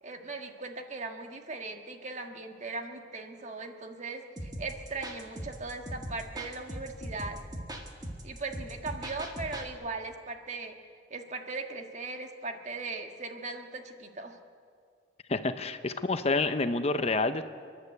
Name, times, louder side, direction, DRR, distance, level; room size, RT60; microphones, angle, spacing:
voice 1, 0.0-7.4 8.2-10.7 11.1-14.4, right 3 dB, 40° right, 4 dB, 1.6 m, -39 dB
sound 1, 4.4-9.7, right 1 dB, 20° right, 1.8 m, -40 dB
voice 2, 15.3-17.4, left 3 dB, 35° left, 10 dB, 0.7 m, -28 dB
29.5 x 11.0 x 8.2 m, 2.2 s
head